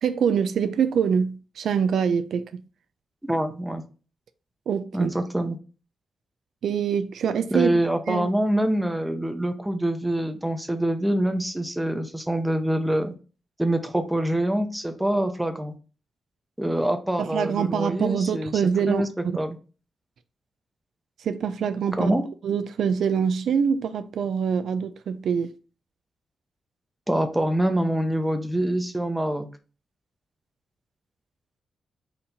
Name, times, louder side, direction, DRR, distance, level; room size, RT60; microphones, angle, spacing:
voice 1, 0.0-2.6 4.7-5.1 6.6-7.7 8.1-8.3 17.2-19.4 21.2-22.2 22.4-25.5, right 7 dB, 85° right, 0.4 m, -25 dB
voice 2, 3.2-3.8 4.9-5.6 7.5-13.1 13.6-15.7 16.6-18.5 18.9-19.6 22.0-22.2 27.1-29.5, right 1 dB, 5° right, 0.7 m, -25 dB
4.4 x 2.7 x 3.7 m
cardioid pair, 90°, 0 cm